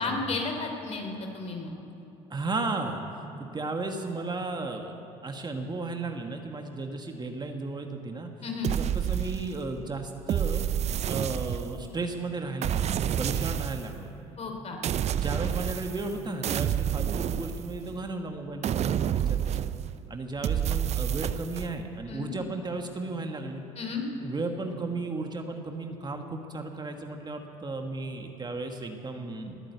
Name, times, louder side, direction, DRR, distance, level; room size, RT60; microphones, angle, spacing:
voice 1, 0.0-1.7 8.4-8.7 14.4-14.8 22.1-22.3 23.7-24.1, left 4 dB, 45° left, 3 dB, 3.1 m, -33 dB
voice 2, 2.3-3.0 3.5-5.0 5.2-8.3 8.8-10.6 11.0-14.1 15.1-19.7 20.1-23.6 24.2-29.6, right 3 dB, 30° right, 4 dB, 1.5 m, -34 dB
sound 1, 8.6-9.8 10.3-11.9 12.6-13.9 14.8-16.1 16.4-18.0 18.6-20.0 20.4-21.7, right 10 dB, 45° right, 0.5 m, -29 dB
20.0 x 8.9 x 8.0 m, 2.9 s
supercardioid pair, 70°, 15 cm